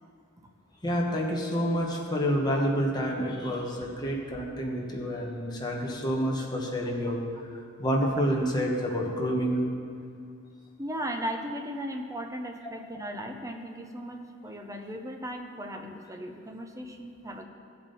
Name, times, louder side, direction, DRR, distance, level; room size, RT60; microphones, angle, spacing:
voice 1, 0.8-7.2 7.8-9.6, equal, 20° left, -2 dB, 1.4 m, -28 dB
voice 2, 10.8-17.4, equal, 15° right, 4 dB, 0.8 m, -37 dB
15.5 x 7.3 x 4.2 m, 2.3 s
head